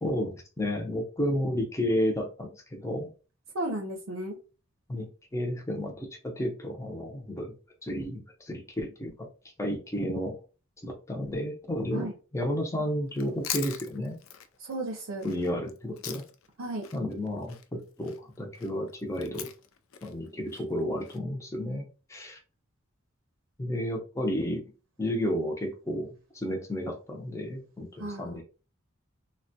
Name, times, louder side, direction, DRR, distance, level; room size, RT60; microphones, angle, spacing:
voice 1, 0.0-3.1 4.9-7.5 7.8-9.3 9.6-10.4 10.8-14.2 15.2-16.3 16.9-19.5 20.0-22.4 23.6-24.6 25.0-28.4, equal, 15° left, 1 dB, 0.6 m, -32 dB
voice 2, 3.5-4.4 11.9-12.1 14.6-15.3 16.6-16.9 28.0-28.4, right 1 dB, 90° right, 3 dB, 0.6 m, -34 dB
Chewing mastication, 13.1-16.5 16.8-21.2, left 10 dB, 85° left, 0.4 m, -41 dB
3.3 x 2.2 x 2.6 m, 0.34 s
head